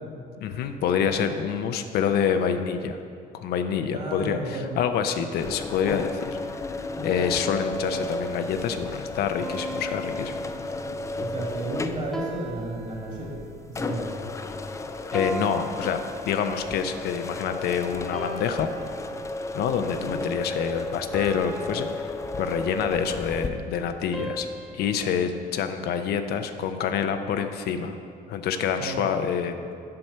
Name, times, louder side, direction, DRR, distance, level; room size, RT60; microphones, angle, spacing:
voice 1, 0.4-3.0 3.3-6.4 7.0-10.3 15.1-18.7 19.5-22.1 22.4-24.5 24.7-28.0 28.3-29.5, left 7 dB, 70° left, 8 dB, 0.5 m, -27 dB
voice 2, 3.9-4.8 11.2-13.4 13.8-14.1 28.8-29.1, right 1 dB, 45° right, -2 dB, 2.1 m, -32 dB
sound 1, 5.4-23.5, left 2 dB, 20° left, 0.4 m, -33 dB
sound 2, 9.4-11.1 12.1-13.6 15.1-16.8 18.1-19.6 21.1-22.9 24.1-25.2, right 1 dB, ahead, 1.0 m, -38 dB
7.7 x 4.3 x 6.7 m, 2.3 s
cardioid pair, 110°, 17 cm